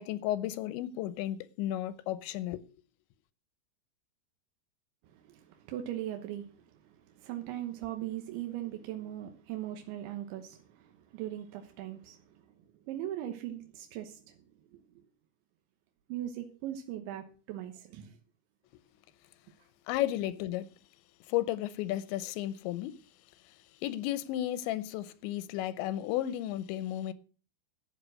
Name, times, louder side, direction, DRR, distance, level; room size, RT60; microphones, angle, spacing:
voice 1, 0.0-2.6 19.9-20.7 21.3-23.0 23.8-27.1, left 13 dB, 90° left, 3.1 m, -33 dB
voice 2, 5.1-6.5 6.9-12.4 12.9-14.4 14.7-14.8 16.1-18.2, right 12 dB, 90° right, 3.5 m, -39 dB
12.0 x 8.9 x 6.2 m
omnidirectional pair, 5.1 m